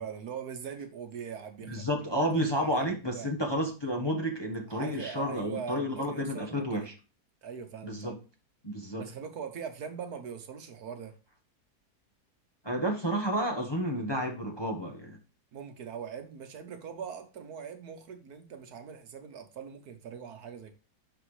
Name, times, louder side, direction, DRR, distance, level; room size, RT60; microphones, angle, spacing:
voice 1, 0.0-2.3 2.5-3.3 4.7-6.9 7.4-8.2 9.0-11.1 15.5-20.7, right 7 dB, 70° right, 1.5 m, -41 dB
voice 2, 1.7-6.9 7.8-8.1 8.6-9.0 12.6-15.2, equal, 20° left, 1.0 m, -31 dB
11.5 x 4.2 x 3.2 m
omnidirectional pair, 1.7 m